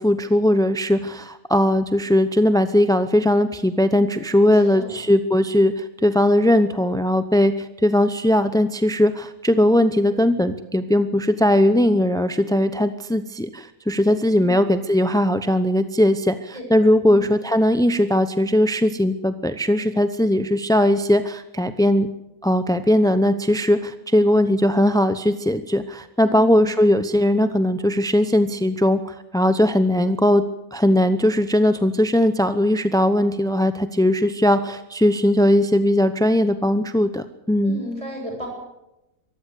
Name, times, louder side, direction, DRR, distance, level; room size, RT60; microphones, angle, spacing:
voice 1, 0.0-22.1 22.4-30.4 30.7-37.8, left 1 dB, 5° left, 11 dB, 0.5 m, -19 dB
voice 2, 4.5-5.0 14.4-14.6 16.5-16.6 17.0-17.3 26.2-26.6 37.6-38.5, left 1 dB, 20° right, -1 dB, 8.0 m, -34 dB
23.5 x 15.0 x 8.4 m, 0.93 s
omnidirectional pair, 1.6 m